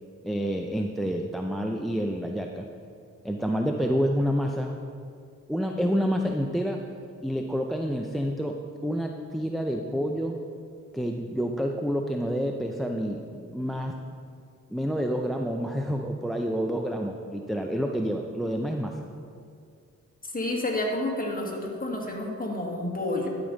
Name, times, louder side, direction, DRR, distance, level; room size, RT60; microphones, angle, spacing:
voice 1, 0.2-2.7 3.2-4.8 5.5-6.8 7.2-8.6 8.8-10.4 10.9-14.0 14.7-19.0, equal, ahead, 3 dB, 0.5 m, -28 dB
voice 2, 20.2-23.3, left 1 dB, 25° left, -1 dB, 1.7 m, -30 dB
12.5 x 5.1 x 4.0 m, 2.3 s
cardioid pair, 65°, 32 cm